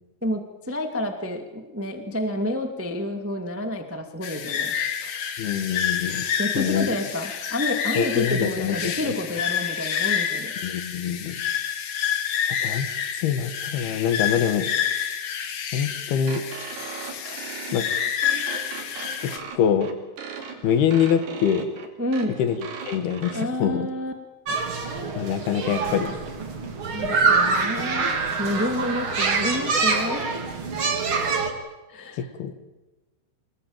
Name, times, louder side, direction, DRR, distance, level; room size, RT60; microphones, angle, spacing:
voice 1, 0.2-4.7 5.0-5.2 6.1-10.5 22.0-22.4 23.3-24.1 26.9-28.1 28.4-30.4 31.9-32.3, left 1 dB, 5° right, 5 dB, 1.2 m, -29 dB
sound 1, 4.2-19.4, left 8 dB, 55° left, 2.2 m, -28 dB
voice 2, 5.4-6.3 6.5-6.9 8.0-9.1 10.6-11.4 12.6-12.9 13.2-14.7 15.7-16.4 17.7-17.9 19.2-20.0 20.6-21.7 22.4-22.6 22.8-23.9 25.2-26.1 32.2-32.6, left 8 dB, 75° left, 11 dB, 3.4 m, -24 dB
sound 2, 16.3-23.5, right 6 dB, 80° right, 5.0 m, -38 dB
sound 3, 24.5-31.5, right 4 dB, 35° right, 2.8 m, -25 dB
26.0 x 20.0 x 9.0 m, 1.1 s
omnidirectional pair, 4.6 m